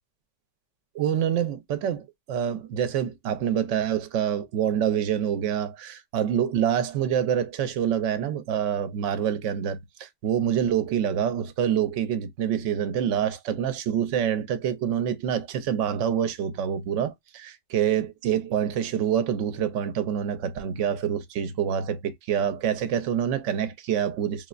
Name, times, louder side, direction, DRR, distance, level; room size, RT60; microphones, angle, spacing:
voice 1, 0.9-24.5, right 9 dB, 70° right, 0.9 m, -26 dB
3.3 x 2.0 x 2.3 m
omnidirectional pair, 1.3 m